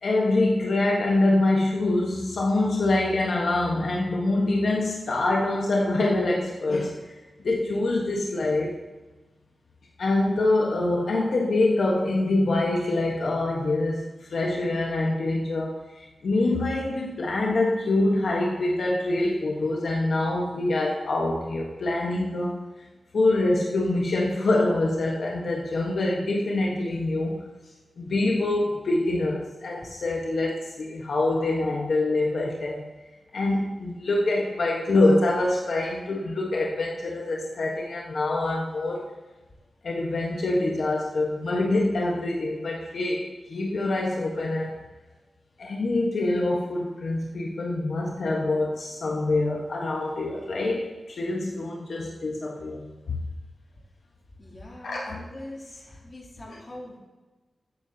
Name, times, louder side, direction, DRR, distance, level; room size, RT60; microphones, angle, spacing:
voice 1, 0.0-7.1 7.4-8.8 10.0-22.6 23.1-27.5 28.0-32.9 33.3-39.1 39.8-44.8 45.6-53.2 54.8-55.0, left 2 dB, 75° left, -2 dB, 1.2 m, -25 dB
voice 2, 54.4-57.0, left 1 dB, 35° left, -3 dB, 2.7 m, -42 dB
13.0 x 9.2 x 2.8 m, 1.2 s
wide cardioid pair, 130°, 0 cm